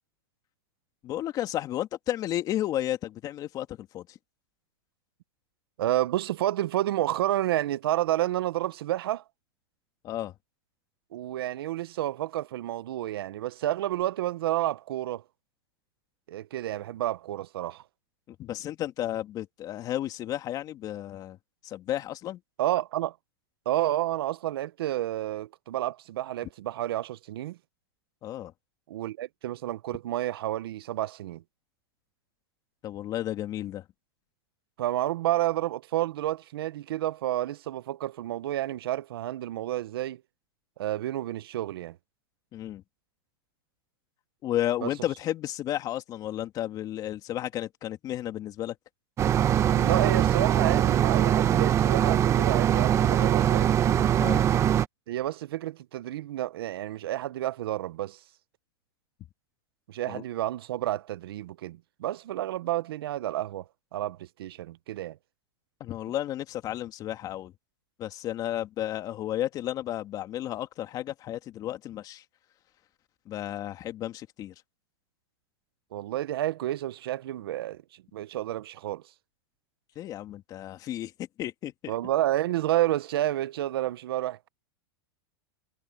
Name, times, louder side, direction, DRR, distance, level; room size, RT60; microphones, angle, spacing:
voice 1, 1.0-4.2 10.0-10.3 18.3-21.4 21.6-22.4 28.2-28.5 32.8-33.8 42.5-42.8 44.4-48.8 54.2-54.5 60.1-60.2 65.8-67.5 68.0-72.2 73.3-74.5 80.0-81.9, left 12 dB, 30° left, 2.5 m, -33 dB
voice 2, 5.8-9.2 11.1-15.2 16.3-17.8 22.6-23.1 23.7-27.6 28.9-31.4 34.8-40.2 40.8-42.0 44.8-44.9 49.5-53.8 55.1-58.2 59.9-63.6 63.9-65.2 75.9-77.8 78.1-79.0 81.9-84.5, right 14 dB, 75° right, 0.8 m, -30 dB
sound 1, 49.2-54.9, right 10 dB, 25° right, 1.0 m, -22 dB
supercardioid pair, 140°, 13 cm